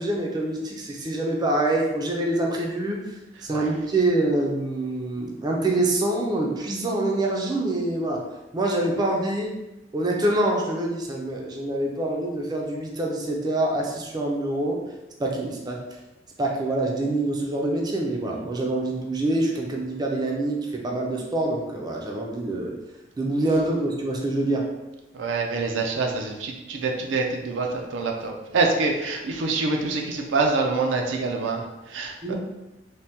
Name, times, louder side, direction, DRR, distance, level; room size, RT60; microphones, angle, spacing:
voice 1, 0.0-3.1 3.4-8.2 8.5-9.5 9.9-14.8 15.2-15.8 16.4-22.7 23.2-24.7 32.2-32.3, right 2 dB, 20° right, -1 dB, 0.4 m, -25 dB
voice 2, 25.1-32.3, right 3 dB, 90° right, 2 dB, 0.4 m, -26 dB
3.3 x 2.1 x 2.8 m, 1.0 s
head